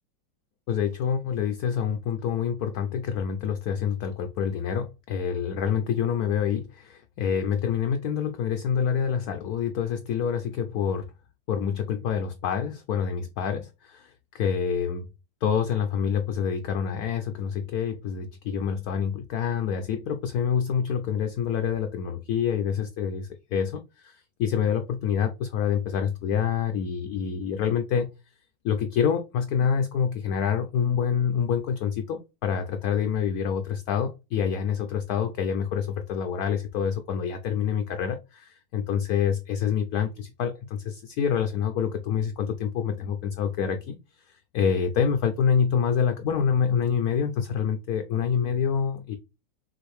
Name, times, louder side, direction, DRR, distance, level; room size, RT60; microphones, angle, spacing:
voice 1, 0.7-11.1 11.5-15.1 15.4-28.1 28.6-49.1, left 7 dB, 70° left, 1.0 m, -27 dB
6.0 x 2.6 x 3.2 m
omnidirectional pair, 2.0 m